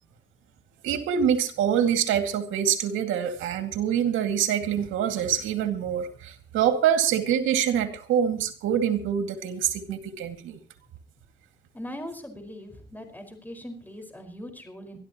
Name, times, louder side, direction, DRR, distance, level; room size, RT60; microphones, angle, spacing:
voice 1, 0.8-10.6, right 9 dB, 90° right, 6 dB, 2.3 m, -25 dB
voice 2, 11.7-15.0, equal, 10° left, 5 dB, 5.1 m, -40 dB
24.0 x 13.5 x 3.1 m, 0.40 s
cardioid pair, 90°, 20 cm